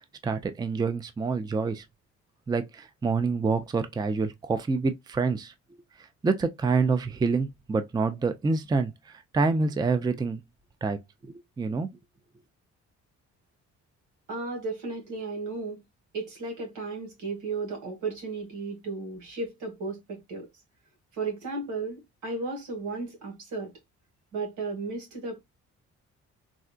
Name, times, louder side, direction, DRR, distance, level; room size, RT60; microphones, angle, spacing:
voice 1, 0.2-1.8 2.5-5.5 6.2-8.9 9.3-10.4 10.8-11.0 11.2-11.9, right 4 dB, 15° right, 0.4 m, -27 dB
voice 2, 14.3-15.8 16.1-20.5 21.2-23.7 24.3-25.4, right 3 dB, 85° right, 1.8 m, -34 dB
3.7 x 2.1 x 2.4 m
cardioid pair, 90°, 30 cm